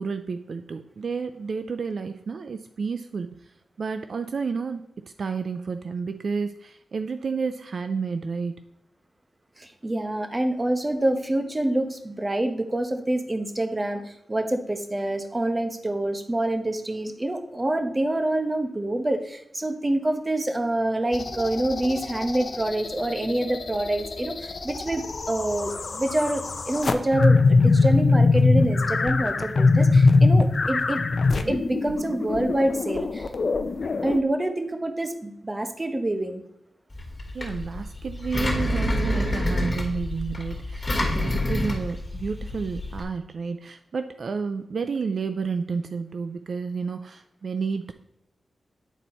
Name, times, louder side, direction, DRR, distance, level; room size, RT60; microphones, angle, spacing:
voice 1, 0.0-3.4 3.8-4.8 5.2-8.6 37.3-47.9, right 5 dB, 65° right, 9 dB, 0.4 m, -31 dB
voice 2, 9.6-31.0 31.5-33.3 34.0-36.4, right 1 dB, 25° right, 7 dB, 0.9 m, -26 dB
sound 1, 21.1-34.2, left 3 dB, 55° left, 0.6 m, -22 dB
Engine, 36.9-43.0, left 1 dB, 25° left, 2.3 m, -28 dB
9.1 x 4.1 x 4.2 m, 0.79 s
wide cardioid pair, 80°, 0 cm